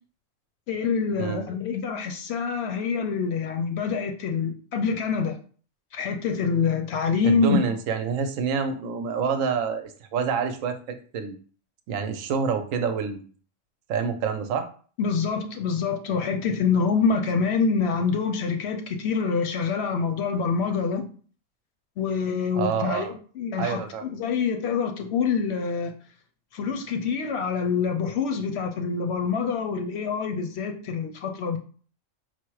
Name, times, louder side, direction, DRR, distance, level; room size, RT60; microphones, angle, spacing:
voice 1, 0.7-5.4 5.9-7.6 15.0-21.1 22.0-25.9 26.5-31.6, left 5 dB, 65° left, 0.7 m, -26 dB
voice 2, 7.2-11.4 11.9-13.3 13.9-14.7 22.5-23.1 23.6-24.1, right 6 dB, 90° right, 1.0 m, -27 dB
4.4 x 2.0 x 4.6 m
omnidirectional pair, 1.3 m